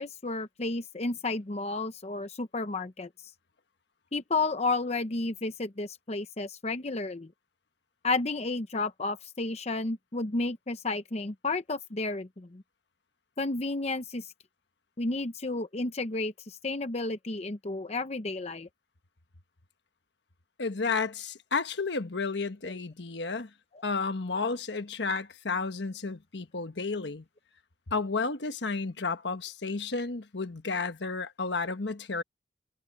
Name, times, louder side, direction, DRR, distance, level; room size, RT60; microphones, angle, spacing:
voice 1, 0.0-3.1 4.1-7.3 8.0-12.6 13.4-14.3 15.0-18.7, left 3 dB, 35° left, 0.8 m, -32 dB
voice 2, 20.6-23.5 23.8-27.2 27.9-32.2, left 4 dB, 70° left, 1.3 m, -32 dB
head